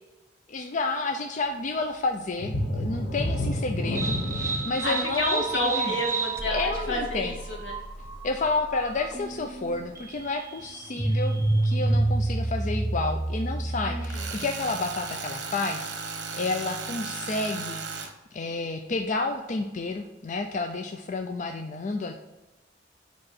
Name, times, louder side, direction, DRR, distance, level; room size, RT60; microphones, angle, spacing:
voice 1, 0.5-5.5 5.8-6.0 6.5-7.4 8.2-11.4 11.6-17.8 18.3-22.1, left 3 dB, 45° left, 4 dB, 0.4 m, -30 dB
sound 1, 2.4-7.8 8.3-8.4 8.9-9.0, left 1 dB, 60° left, 1.2 m, -31 dB
sound 2, 3.9-14.5, right 2 dB, 15° right, 0.5 m, -29 dB
voice 2, 4.8-7.8 13.8-14.3, left 1 dB, 80° left, -1 dB, 1.7 m, -30 dB
Tools, 14.0-18.1, right 4 dB, 70° right, 1.0 m, -35 dB
5.3 x 4.7 x 4.1 m, 1.1 s
head